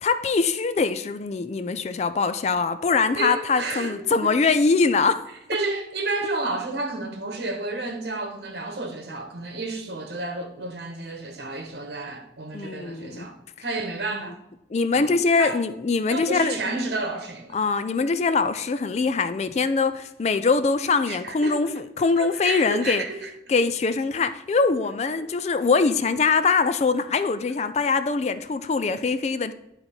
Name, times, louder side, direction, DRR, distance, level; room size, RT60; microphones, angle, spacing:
voice 1, 0.0-5.3 12.5-13.3 14.7-16.6 17.5-23.0 23.5-29.5, left 4 dB, 35° left, 0.3 m, -23 dB
voice 2, 3.2-4.3 5.5-14.4 14.9-15.6 16.1-17.6 21.1-21.7 22.2-23.3 25.2-25.3, right 2 dB, 65° right, 1.3 m, -31 dB
10.5 x 4.1 x 4.3 m
head